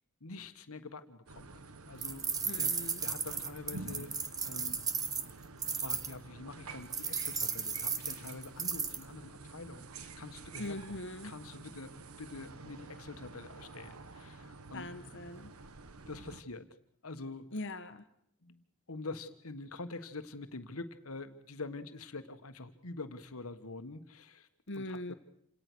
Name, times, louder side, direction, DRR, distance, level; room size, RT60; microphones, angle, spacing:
voice 1, 0.2-2.3 2.6-4.1 4.4-4.8 5.7-11.0 11.2-11.9 12.2-14.9 16.1-16.7 17.0-17.5 18.4-18.6 18.9-24.5 24.8-25.1, left 3 dB, 85° left, 9 dB, 1.6 m, -46 dB
sound 1, 1.3-16.4, right 3 dB, 85° right, 1.2 m, -49 dB
sound 2, 2.0-6.1 6.9-9.0, right 5 dB, 15° right, 1.1 m, -35 dB
voice 2, 2.4-3.0 10.6-11.3 14.7-15.5 17.5-18.0 24.7-25.1, left 1 dB, 60° left, 9 dB, 1.5 m, -41 dB
28.0 x 18.0 x 6.3 m, 0.70 s
head